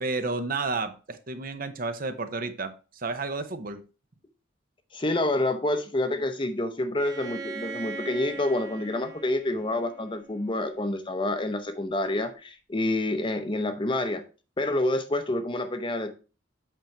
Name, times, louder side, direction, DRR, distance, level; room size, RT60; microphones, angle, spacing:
voice 1, 0.0-3.8, right 3 dB, 45° right, 0.8 m, -31 dB
voice 2, 4.9-14.2 14.6-16.2, left 1 dB, 25° left, 0.7 m, -28 dB
Bowed string instrument, 7.0-10.7, right 4 dB, 15° right, 1.1 m, -40 dB
8.1 x 4.4 x 4.5 m
head